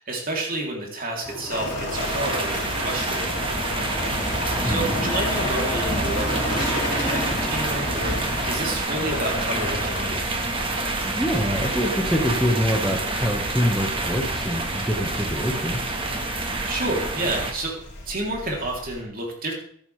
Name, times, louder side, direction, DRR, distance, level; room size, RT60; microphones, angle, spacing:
voice 1, 0.0-3.3 4.6-10.2 16.4-17.8 18.1-19.5, right 2 dB, 40° right, -1 dB, 3.6 m, -30 dB
sound 1, 1.2-8.8, equal, 15° left, 3.0 m, -32 dB
sound 2, 1.5-19.0, left 2 dB, 55° left, 4.4 m, -35 dB
sound 3, 1.9-17.5, right 2 dB, 25° right, 1.8 m, -27 dB
voice 2, 11.0-15.9, equal, ahead, -2 dB, 1.6 m, -25 dB
15.5 x 11.5 x 3.5 m, 0.65 s
head